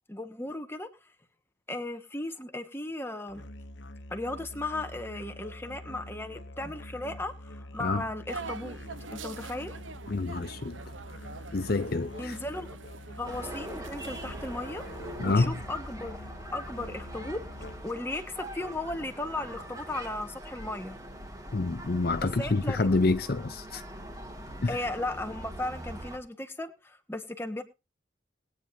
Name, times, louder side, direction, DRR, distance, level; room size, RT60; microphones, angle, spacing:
voice 1, 0.1-0.9 1.7-3.4 4.1-8.8 9.1-9.8 12.2-12.8 13.2-16.2 16.5-17.4 17.8-21.0 22.4-22.9 24.7-27.6, left 2 dB, 10° left, 1.5 m, -36 dB
Musical instrument, 3.3-18.0, left 1 dB, 70° left, 1.0 m, -45 dB
sound 1, 8.3-15.5, right 4 dB, 85° right, 1.1 m, -44 dB
voice 2, 10.1-10.8 11.5-12.4 15.2-15.6 21.5-23.8 24.6-24.8, left 3 dB, 50° left, 0.6 m, -27 dB
sound 2, 13.2-26.2, right 1 dB, 20° right, 2.3 m, -43 dB
20.5 x 9.5 x 2.8 m
head